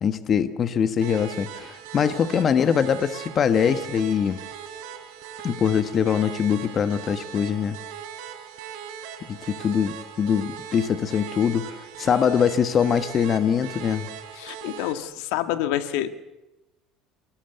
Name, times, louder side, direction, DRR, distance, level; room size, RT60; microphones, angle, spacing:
voice 1, 0.0-4.4 5.4-7.8 9.3-14.1, left 7 dB, 35° left, 11 dB, 1.4 m, -23 dB
sound 1, 1.0-14.9, right 8 dB, 80° right, 4.4 m, -39 dB
voice 2, 14.3-16.2, left 12 dB, 80° left, 9 dB, 1.8 m, -28 dB
29.0 x 19.5 x 8.1 m, 1.0 s
cardioid pair, 125°, 0 cm